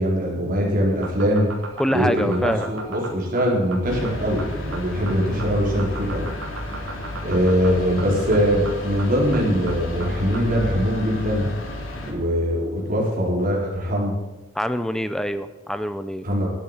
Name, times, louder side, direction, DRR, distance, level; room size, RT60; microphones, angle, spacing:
voice 1, 0.0-1.5 1.9-6.3 7.2-11.5 12.0-14.1 16.2-16.5, equal, 45° right, -2 dB, 4.3 m, -22 dB
sound 1, 0.9-10.5, right 3 dB, 75° right, 2.9 m, -36 dB
voice 2, 1.8-2.7 14.6-16.3, equal, 5° left, 11 dB, 0.6 m, -25 dB
sound 2, 3.8-12.1, left 1 dB, 85° left, 3.2 m, -32 dB
12.0 x 8.2 x 8.9 m, 1.1 s
head